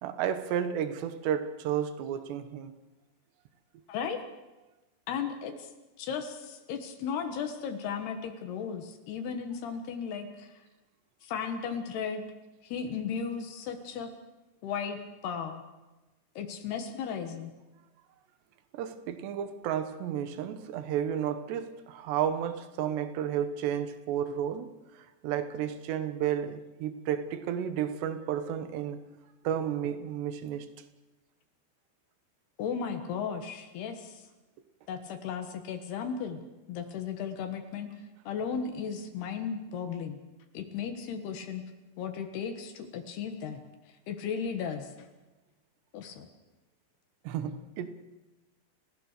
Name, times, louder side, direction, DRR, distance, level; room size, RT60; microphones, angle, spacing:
voice 1, 0.0-2.7 18.7-24.7 25.2-29.0 29.4-30.7 47.2-48.0, right 9 dB, 85° right, 10 dB, 3.4 m, -32 dB
voice 2, 5.1-5.7 6.0-10.5 11.2-12.2 12.6-14.1 14.6-15.6 16.4-17.5 32.6-34.2 34.9-36.4 36.7-37.9 38.3-40.2 40.5-41.6 42.0-43.6 44.1-44.9 45.9-46.3, left 6 dB, 75° left, 6 dB, 3.4 m, -35 dB
30.0 x 16.0 x 6.7 m, 1.1 s
omnidirectional pair, 4.8 m